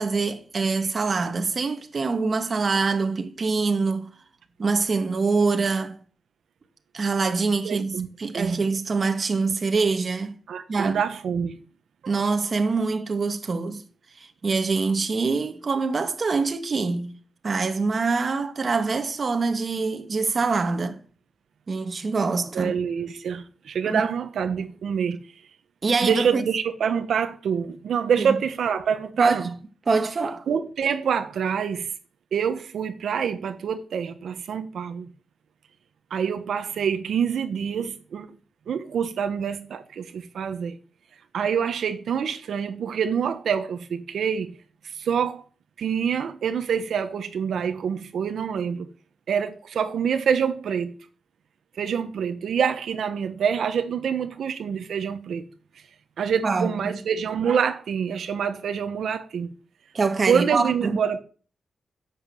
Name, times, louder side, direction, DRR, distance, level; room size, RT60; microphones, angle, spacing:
voice 1, 0.0-4.1 4.6-6.0 6.9-10.4 10.7-11.0 12.1-13.8 14.4-17.1 17.4-21.0 21.7-22.8 23.9-24.0 25.8-26.4 28.2-28.4 29.2-29.5 29.9-30.5 56.4-57.0 59.9-61.0, right 4 dB, 40° right, 1.8 m, -24 dB
voice 2, 7.6-8.1 8.3-8.6 10.5-11.6 12.0-12.1 22.5-25.2 26.0-29.4 30.5-31.9 32.3-35.1 36.1-38.3 38.7-40.8 41.3-44.5 44.8-45.4 45.8-48.9 49.3-50.9 51.7-55.5 56.2-59.5 60.3-61.2, right 7 dB, 80° right, 1.3 m, -26 dB
11.0 x 7.7 x 9.2 m
wide cardioid pair, 125°, 0 cm